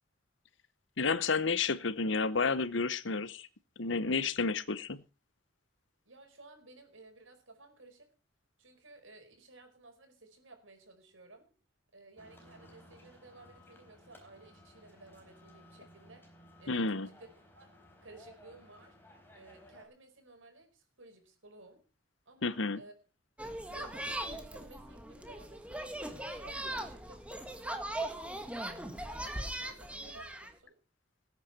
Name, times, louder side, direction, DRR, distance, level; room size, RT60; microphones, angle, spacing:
voice 1, 1.0-3.5 3.8-5.0 16.7-17.1 22.4-22.8, left 4 dB, 75° left, 1.0 m, -31 dB
voice 2, 6.0-8.1 8.6-11.4 11.9-16.3 16.6-17.3 17.5-17.7 18.0-19.0 19.3-21.8 22.3-22.9 23.7-30.8, right 2 dB, 80° right, 4.9 m, -56 dB
sound 1, 12.2-19.9, left 1 dB, 10° left, 4.0 m, -58 dB
sound 2, 23.4-30.5, right 1 dB, 5° right, 1.6 m, -40 dB
19.5 x 9.7 x 4.3 m
head